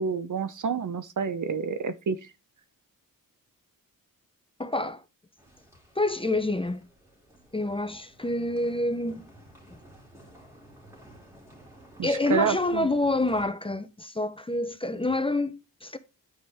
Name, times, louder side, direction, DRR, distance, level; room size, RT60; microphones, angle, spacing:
voice 1, 0.0-2.2 12.0-12.9, right 6 dB, 60° right, 0.9 m, -28 dB
voice 2, 4.6-5.0 6.0-6.8 7.5-9.3 9.7-9.8 12.0-16.0, left 2 dB, 15° left, 0.8 m, -27 dB
sound 1, 5.4-13.4, right 1 dB, 5° right, 3.4 m, -53 dB
9.5 x 5.1 x 3.6 m
wide cardioid pair, 100°, 35 cm